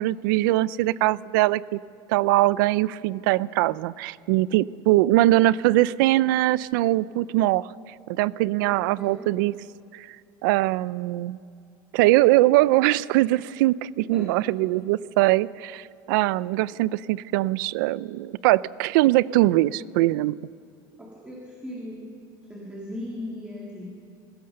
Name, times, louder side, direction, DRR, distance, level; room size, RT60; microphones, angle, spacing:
voice 1, 0.0-1.8 2.1-7.7 8.1-9.5 9.9-10.2 10.4-11.4 11.9-20.4, right 17 dB, 85° right, 20 dB, 0.5 m, -22 dB
voice 2, 8.6-9.3 14.1-14.4 21.0-22.1 22.4-23.9, left 1 dB, 10° right, -3 dB, 2.2 m, -38 dB
27.0 x 16.0 x 6.6 m, 2.4 s
cardioid pair, 175°, 10 cm